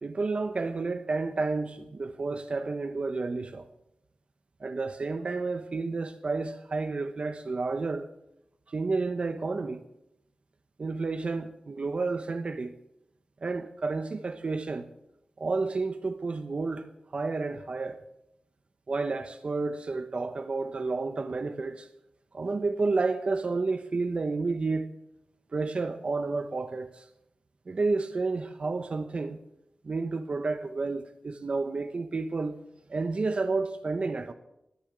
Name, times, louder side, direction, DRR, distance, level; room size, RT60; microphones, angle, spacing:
voice 1, 0.0-3.7 4.6-8.1 8.7-9.8 10.8-12.7 13.4-14.9 15.4-18.0 18.9-21.9 22.3-24.9 25.5-27.1 27.7-29.4 29.8-32.6 32.9-34.3, right 3 dB, 50° right, 0.8 m, -30 dB
19.5 x 7.1 x 8.4 m
wide cardioid pair, 120°, 2 cm